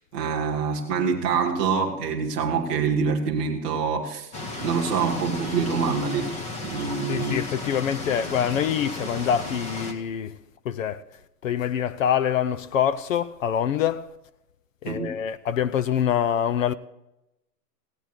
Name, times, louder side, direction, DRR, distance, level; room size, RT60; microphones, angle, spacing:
voice 1, 0.1-4.3 4.6-6.3 6.6-7.4 14.9-15.1, right 5 dB, 5° right, 0.4 m, -25 dB
sound 1, 4.3-9.9, left 2 dB, 15° left, 1.0 m, -34 dB
voice 2, 7.1-10.3 10.6-11.0 11.4-14.1 14.8-16.7, left 9 dB, 55° left, 0.7 m, -25 dB
16.5 x 9.0 x 4.5 m
hypercardioid pair, 140°, 48 cm